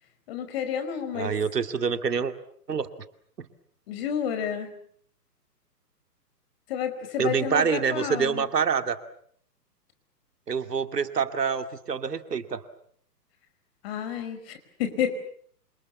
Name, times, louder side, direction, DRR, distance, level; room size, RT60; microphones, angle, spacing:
voice 1, 0.3-1.3 3.9-4.7 6.7-8.5 13.8-15.2, left 8 dB, 35° left, 8 dB, 5.2 m, -30 dB
voice 2, 1.1-2.3 2.7-2.9 7.2-9.0 10.5-12.6, right 6 dB, 70° right, 9 dB, 2.5 m, -26 dB
28.0 x 27.5 x 7.3 m, 0.63 s
figure-of-eight pair, 130°, 50 cm